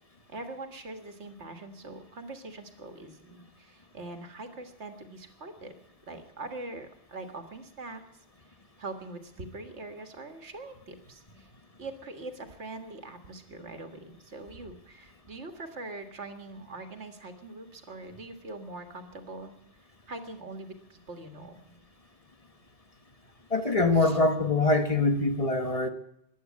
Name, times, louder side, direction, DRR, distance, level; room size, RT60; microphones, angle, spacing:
voice 1, 0.3-5.7 6.1-8.0 8.5-11.5 11.8-19.5 20.1-21.8 24.0-24.2, right 2 dB, 85° right, 7 dB, 1.9 m, -43 dB
voice 2, 23.5-25.9, left 2 dB, 35° left, 7 dB, 1.1 m, -24 dB
15.5 x 11.0 x 8.4 m, 0.81 s
omnidirectional pair, 1.1 m